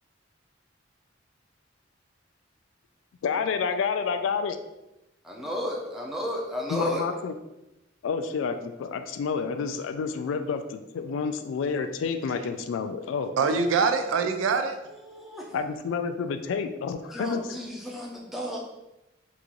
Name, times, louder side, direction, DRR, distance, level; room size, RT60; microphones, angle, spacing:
voice 1, 3.2-4.6 6.7-7.3 8.0-13.4 15.5-17.4, left 5 dB, 80° left, 8 dB, 0.3 m, -29 dB
voice 2, 5.2-7.0 13.4-13.8 15.0-15.5 17.1-18.6, equal, ahead, -2 dB, 0.5 m, -33 dB
voice 3, 13.4-14.8, right 5 dB, 85° right, 8 dB, 0.4 m, -24 dB
2.9 x 2.5 x 3.8 m, 0.94 s
head